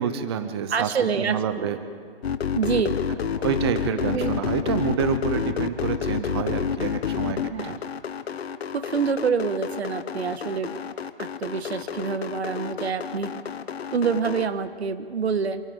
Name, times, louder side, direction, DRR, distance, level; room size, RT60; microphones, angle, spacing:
voice 1, 0.0-1.8 3.4-7.8, right 7 dB, 25° right, 10 dB, 0.7 m, -28 dB
voice 2, 0.7-1.8 2.5-3.0 4.0-4.3 7.5-7.8 8.7-10.7 11.2-13.3 13.9-15.6, right 6 dB, 85° right, 10 dB, 1.6 m, -26 dB
sound 1, 2.2-14.5, left 7 dB, 75° left, 1.2 m, -29 dB
28.0 x 27.5 x 3.8 m, 2.1 s
hypercardioid pair, 165°, 31 cm